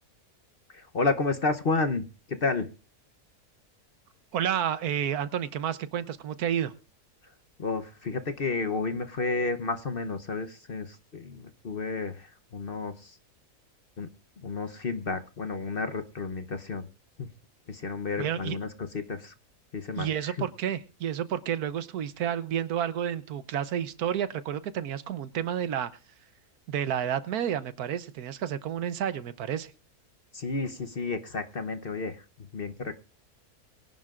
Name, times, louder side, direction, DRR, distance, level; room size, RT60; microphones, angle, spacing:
voice 1, 0.7-2.7 7.6-13.2 14.0-14.1 14.4-16.9 17.2-17.3 17.7-19.3 19.7-20.4 30.3-32.9, left 3 dB, 45° left, 8 dB, 0.9 m, -31 dB
voice 2, 4.3-6.7 18.2-18.6 20.0-25.9 26.7-29.7, right 9 dB, 75° right, 13 dB, 1.3 m, -30 dB
22.5 x 11.0 x 2.5 m, 0.35 s
omnidirectional pair, 1.6 m